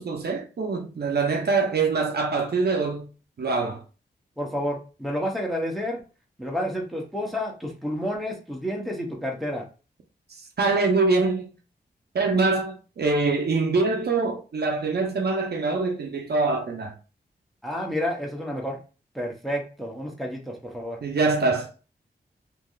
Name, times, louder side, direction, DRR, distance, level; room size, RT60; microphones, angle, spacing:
voice 1, 0.0-3.1 3.4-3.8 10.6-11.5 12.1-16.9 21.0-21.9, right 3 dB, 65° right, 0.6 m, -24 dB
voice 2, 4.4-6.0 6.4-9.6 17.6-18.8 19.1-21.0, equal, ahead, 0.8 m, -30 dB
3.2 x 2.7 x 2.3 m
wide cardioid pair, 70°, 18 cm